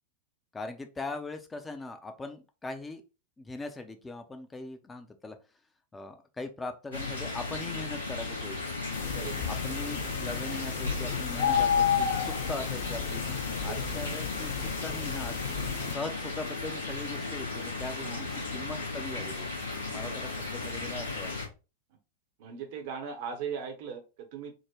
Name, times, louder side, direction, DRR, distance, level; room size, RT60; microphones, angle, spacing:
voice 1, 0.5-3.0 3.4-5.4 5.9-8.6 9.4-15.6 15.9-19.5 19.8-21.3, left 3 dB, 15° left, 6 dB, 0.5 m, -40 dB
sound 1, 6.9-21.5, left 3 dB, 75° left, 1.2 m, -36 dB
sound 2, 8.9-15.9, left 7 dB, 55° left, 0.6 m, -31 dB
voice 2, 18.0-18.7 20.0-20.2 22.4-24.5, right 6 dB, 50° right, 6 dB, 0.8 m, -39 dB
3.7 x 2.1 x 3.0 m, 0.30 s
figure-of-eight pair, 90°, 0 cm